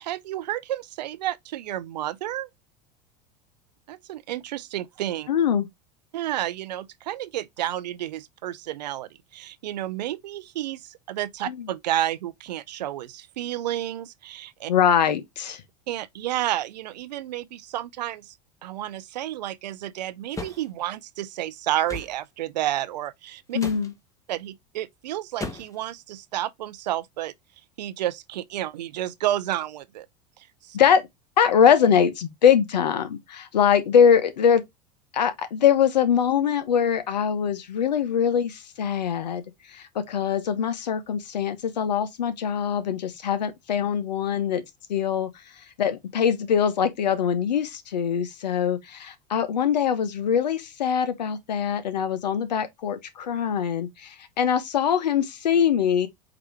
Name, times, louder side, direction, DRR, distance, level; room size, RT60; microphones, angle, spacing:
voice 1, 0.0-2.5 3.9-5.3 6.1-14.7 15.9-18.3 18.6-23.6 24.3-27.3 27.8-30.1 30.4-30.8, right 13 dB, 85° right, 0.5 m, -31 dB
voice 2, 5.3-5.7 11.5-11.7 14.7-15.6 23.5-23.9 30.7-31.0 31.4-34.6 35.1-39.4 39.7-44.6 44.9-45.3 45.8-56.1, left 8 dB, 85° left, 1.0 m, -22 dB
sound 1, 20.3-20.6 21.9-22.2 23.5-23.9 25.4-25.8, left 3 dB, 15° left, 1.2 m, -35 dB
4.8 x 3.0 x 3.3 m
hypercardioid pair, 95°, 21 cm